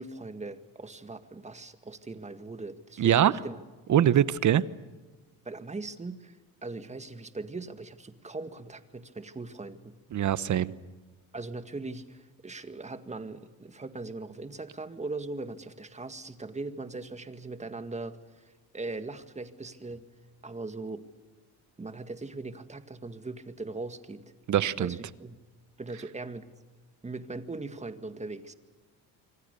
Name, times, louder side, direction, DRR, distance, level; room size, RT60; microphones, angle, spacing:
voice 1, 0.0-3.6 4.0-4.1 5.5-9.9 11.3-20.0 20.4-21.1 21.8-24.2 24.7-25.4 25.8-26.4 27.0-28.5, right 3 dB, 20° right, 9 dB, 1.9 m, -40 dB
voice 2, 3.0-3.3 3.9-4.6 10.1-10.7 24.5-25.0, right 10 dB, 50° right, 16 dB, 1.0 m, -23 dB
27.0 x 25.0 x 6.8 m, 1.3 s
cardioid pair, 105°, 38 cm